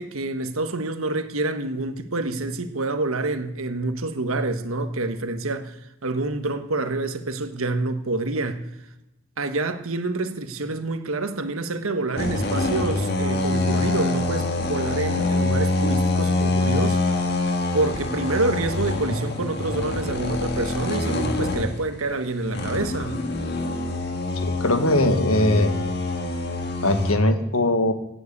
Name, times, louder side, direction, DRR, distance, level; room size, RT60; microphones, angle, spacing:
voice 1, 0.0-5.7 6.0-8.6 9.4-17.0 17.7-23.2, right 2 dB, 85° right, 1.5 m, -27 dB
sound 1, 12.2-22.0 22.5-27.1, left 2 dB, 50° left, 1.7 m, -25 dB
voice 2, 24.4-25.7 26.8-27.9, left 1 dB, 90° left, 1.7 m, -20 dB
17.0 x 8.0 x 8.3 m
head